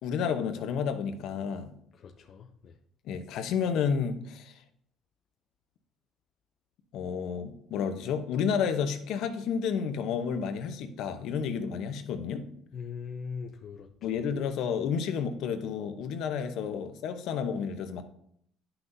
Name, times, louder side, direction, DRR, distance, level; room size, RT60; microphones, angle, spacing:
voice 1, 0.0-1.7 3.1-4.5 6.9-12.5 14.0-18.0, left 7 dB, 65° left, 0.8 m, -31 dB
voice 2, 1.9-2.8 12.7-14.2, left 5 dB, 40° left, 0.5 m, -41 dB
11.5 x 5.9 x 2.7 m
cardioid pair, 145°, 0 cm